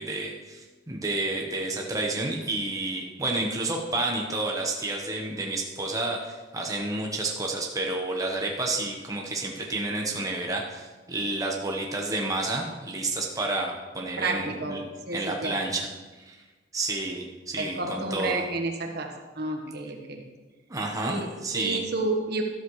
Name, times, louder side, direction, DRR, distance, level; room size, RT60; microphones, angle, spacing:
voice 1, 0.0-14.8 15.1-15.9 16.2-16.4 16.7-18.4 20.7-21.8, right 2 dB, 20° right, 0 dB, 1.1 m, -30 dB
voice 2, 14.2-15.6 17.6-20.2 21.1-22.4, right 2 dB, 60° right, 3 dB, 1.3 m, -31 dB
13.0 x 12.0 x 3.2 m, 1.3 s
head